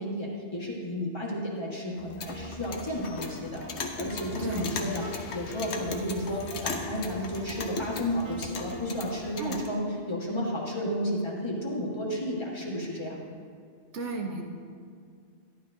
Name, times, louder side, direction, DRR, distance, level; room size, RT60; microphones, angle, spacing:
voice 1, 0.0-3.6 4.0-5.0 5.3-13.2, equal, 25° left, -5 dB, 1.5 m, -32 dB
Clock, 2.0-9.7, left 4 dB, 75° left, 1.1 m, -38 dB
Wind instrument woodwind instrument, 2.2-7.0 7.3-10.0, right 2 dB, 45° right, 1.3 m, -47 dB
sound 1, 3.8-9.1, left 5 dB, 60° left, 0.4 m, -47 dB
voice 2, 4.4-4.8 9.4-9.6 13.9-14.4, right 4 dB, 85° right, 1 dB, 1.3 m, -34 dB
11.5 x 11.5 x 2.6 m, 2.1 s
omnidirectional pair, 1.2 m